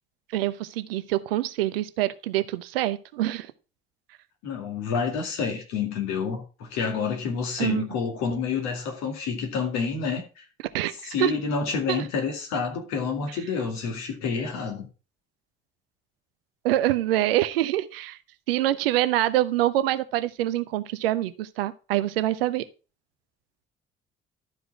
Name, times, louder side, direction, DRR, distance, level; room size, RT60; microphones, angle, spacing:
voice 1, 0.3-3.5 7.6-7.9 10.7-10.9 11.2-11.3 11.9-12.0 16.6-18.2 18.5-22.6, right 14 dB, 70° right, 0.6 m, -25 dB
voice 2, 4.4-10.4 11.0-14.9, left 5 dB, 60° left, 2.2 m, -28 dB
12.0 x 4.7 x 4.7 m
figure-of-eight pair, 45°, 30 cm